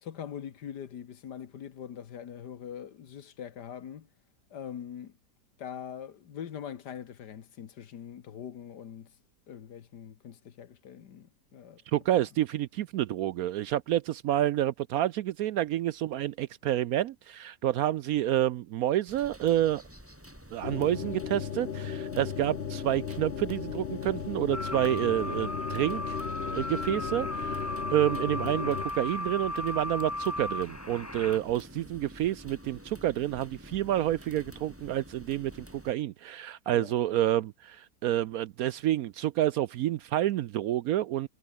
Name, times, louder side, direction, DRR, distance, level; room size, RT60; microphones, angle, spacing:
voice 1, 0.0-4.1 4.5-5.1 5.6-9.2 9.5-11.8 36.7-37.0, left 8 dB, 75° left, 1.9 m, -42 dB
voice 2, 11.9-19.8 20.5-26.2 26.5-41.3, right 13 dB, 70° right, 0.9 m, -29 dB
sound 1, 19.1-35.9, equal, 5° right, 5.9 m, -49 dB
sound 2, 20.6-28.8, left 7 dB, 45° left, 1.0 m, -36 dB
sound 3, 24.5-31.4, left 2 dB, 10° left, 1.1 m, -35 dB
omnidirectional pair, 1.8 m